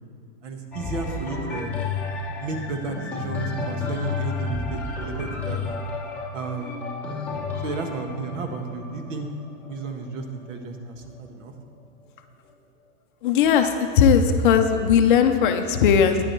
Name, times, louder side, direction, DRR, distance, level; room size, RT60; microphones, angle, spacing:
voice 1, 0.4-1.7 2.4-5.6 6.3-6.8 7.6-9.3 9.7-11.5, right 3 dB, 60° right, 5 dB, 1.4 m, -33 dB
sound 1, 0.7-10.5 11.2-11.3, left 3 dB, 5° left, 0.9 m, -31 dB
voice 2, 13.2-13.7 14.0-16.2, left 7 dB, 40° left, 6 dB, 0.6 m, -18 dB
11.0 x 10.0 x 4.5 m, 2.4 s
supercardioid pair, 165°, 42 cm